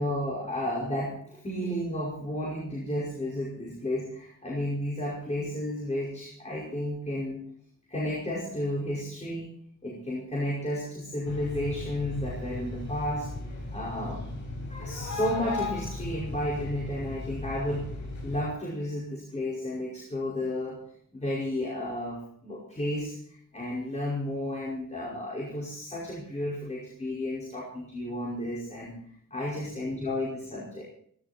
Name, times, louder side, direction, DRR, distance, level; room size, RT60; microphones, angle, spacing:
voice 1, 0.0-7.4 7.9-9.5 9.8-14.4 14.7-17.9 18.2-20.8 21.1-29.0 29.3-30.8, left 1 dB, 20° left, -5 dB, 5.3 m, -32 dB
sound 1, 11.3-18.4, left 2 dB, 60° left, 6.7 m, -36 dB
18.0 x 16.0 x 4.4 m, 0.62 s
wide cardioid pair, 145°, 32 cm